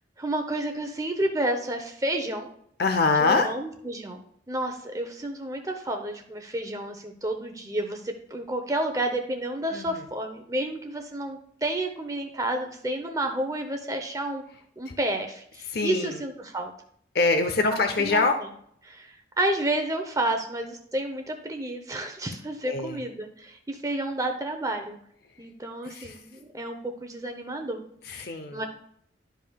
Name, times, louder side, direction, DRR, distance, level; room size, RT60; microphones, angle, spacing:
voice 1, 0.2-2.5 3.2-4.2 4.5-14.4 14.8-16.7 17.7-18.3 18.8-25.0 25.4-27.8 28.5-28.6, right 1 dB, 20° right, 4 dB, 0.8 m, -30 dB
voice 2, 2.8-3.5 9.7-10.0 14.9-15.0 15.7-16.2 17.1-18.3 22.6-23.0 25.9-26.2 28.0-28.6, left 3 dB, 60° left, 6 dB, 0.7 m, -24 dB
12.0 x 5.3 x 2.3 m, 0.66 s
head